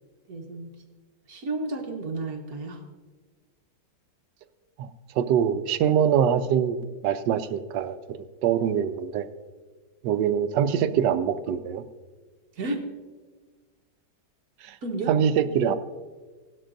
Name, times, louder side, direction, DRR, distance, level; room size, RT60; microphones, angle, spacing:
voice 1, 0.3-0.7 1.3-2.8 12.6-12.8 14.8-15.1, right 2 dB, 60° right, 3 dB, 1.7 m, -32 dB
voice 2, 5.2-6.8 7.0-9.3 10.0-11.8 14.6-14.8 15.1-15.8, right 8 dB, 90° right, 12 dB, 1.3 m, -24 dB
16.5 x 12.0 x 2.6 m, 1.4 s
omnidirectional pair, 1.8 m